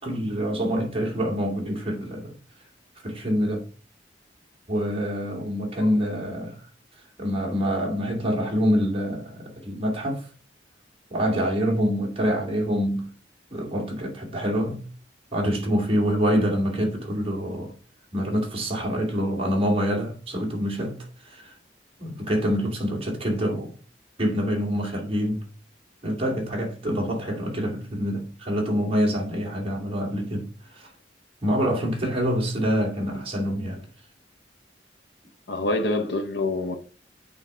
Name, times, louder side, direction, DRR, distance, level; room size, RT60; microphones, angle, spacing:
voice 1, 0.0-2.3 3.0-3.7 4.7-6.7 7.2-10.3 11.1-13.1 13.5-14.8 15.3-17.7 18.1-21.5 22.0-23.7 24.2-25.4 26.0-30.5 30.7-30.9 31.4-33.9, equal, 30° right, 2.5 m, -26 dB
voice 2, 35.5-36.8, left 2 dB, 70° left, 0.9 m, -26 dB
8.9 x 4.0 x 4.3 m
head